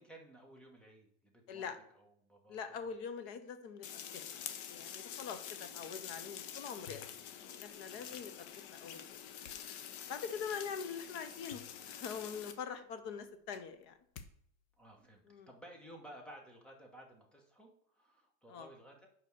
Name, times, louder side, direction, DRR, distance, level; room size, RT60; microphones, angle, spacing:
voice 1, 0.0-3.0 7.9-8.2 14.8-19.1, right 1 dB, ahead, 1 dB, 1.2 m, -56 dB
voice 2, 2.5-3.9 4.1-4.4 4.7-9.0 10.1-11.6 11.9-14.0 15.3-15.5 18.5-18.7, left 6 dB, 20° left, 9 dB, 0.3 m, -44 dB
sound 1, 3.8-12.5, left 9 dB, 40° left, 0.8 m, -47 dB
sound 2, 6.1-7.4 8.9-9.6 11.0-11.1 11.4-12.2 12.6-12.7 13.0-14.3 14.6-15.0, left 7 dB, 75° left, 1.0 m, -54 dB
5.3 x 5.3 x 6.5 m, 0.66 s
supercardioid pair, 150°, 40 cm